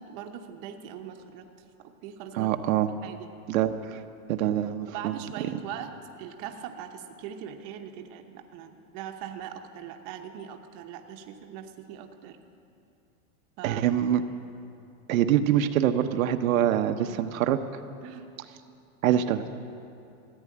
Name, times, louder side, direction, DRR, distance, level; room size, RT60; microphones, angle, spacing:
voice 1, 0.0-1.4 1.8-2.5 3.0-3.3 4.9-5.9 6.2-12.4 13.6-13.8 16.9-17.2 18.0-18.3, right 9 dB, 35° right, 5 dB, 0.9 m, -41 dB
voice 2, 2.4-2.9 3.5-4.0 4.3-5.2 13.6-14.2 15.1-17.6 19.0-19.4, right 11 dB, 75° right, 8 dB, 0.9 m, -24 dB
15.0 x 9.6 x 8.4 m, 2.6 s
supercardioid pair, 160°, 41 cm